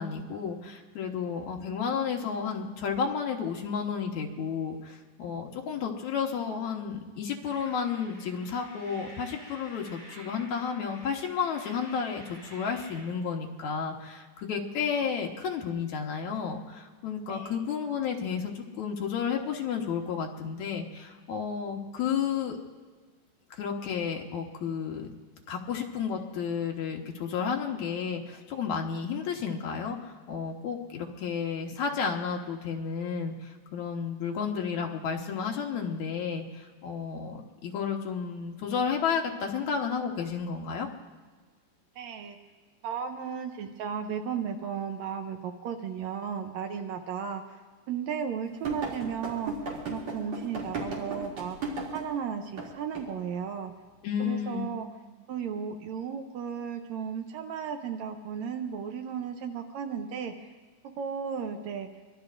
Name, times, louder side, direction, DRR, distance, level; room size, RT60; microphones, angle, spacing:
voice 1, 0.0-22.6 23.5-25.1 25.5-40.9 54.0-54.8, left 6 dB, 70° left, 1 dB, 2.5 m, -32 dB
sound 1, 7.4-13.0, right 1 dB, 20° right, 7.1 m, -50 dB
voice 2, 17.3-17.6 42.0-42.4 42.8-49.5 49.9-53.7 54.2-54.9 55.3-60.5 61.0-61.9, right 7 dB, 75° right, 5 dB, 1.8 m, -35 dB
sound 2, 48.6-52.1 52.6-52.7 52.9-53.1, right 3 dB, 55° right, 3.8 m, -35 dB
24.5 x 21.5 x 2.6 m, 1.5 s
omnidirectional pair, 3.6 m